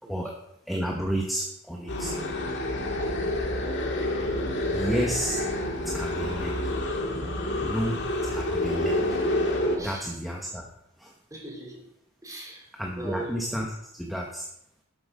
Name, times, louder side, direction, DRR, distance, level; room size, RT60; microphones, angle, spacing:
voice 1, 0.0-0.3 0.7-2.1 4.7-5.4 5.8-6.7 7.6-8.0 8.3-9.2 9.7-10.7 11.0-11.1 12.7-13.7 13.9-14.5, equal, ahead, -1 dB, 1.1 m, -31 dB
sound 1, 1.9-9.8, left 1 dB, 60° left, 1.9 m, -28 dB
voice 2, 2.8-3.4 7.5-7.7 9.8-10.1 11.3-11.8 12.2-12.7 13.0-13.3, right 2 dB, 15° right, -2 dB, 3.4 m, -40 dB
11.5 x 7.9 x 4.9 m, 0.77 s
head